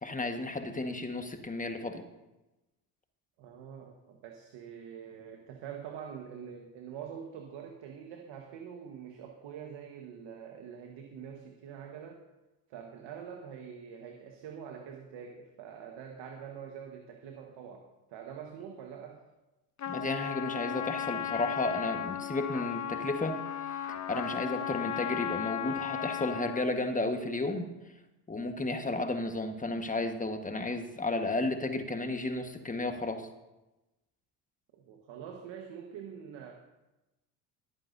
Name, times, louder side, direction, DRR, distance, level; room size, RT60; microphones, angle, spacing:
voice 1, 0.0-2.0 19.9-23.4 23.9-27.7 28.3-33.3, left 2 dB, 15° left, 6 dB, 1.5 m, -33 dB
voice 2, 3.4-12.2 12.7-19.3 34.7-36.5, right 8 dB, 65° right, 3 dB, 1.5 m, -45 dB
Trumpet, 19.8-26.7, left 10 dB, 35° left, 0.8 m, -36 dB
22.5 x 9.0 x 2.7 m, 1.0 s
hypercardioid pair, 70°, 48 cm